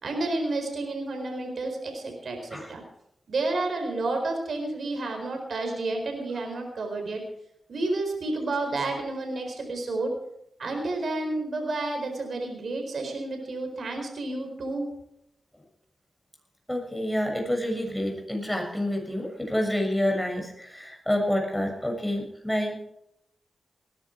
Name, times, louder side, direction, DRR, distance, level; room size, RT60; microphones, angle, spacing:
voice 1, 0.0-2.8 3.3-7.2 7.7-10.1 10.6-14.9, right 2 dB, 70° right, 3 dB, 4.4 m, -30 dB
voice 2, 16.7-22.8, left 1 dB, 10° left, 2 dB, 6.9 m, -28 dB
19.5 x 11.5 x 4.7 m, 0.78 s
cardioid pair, 55°, 0 cm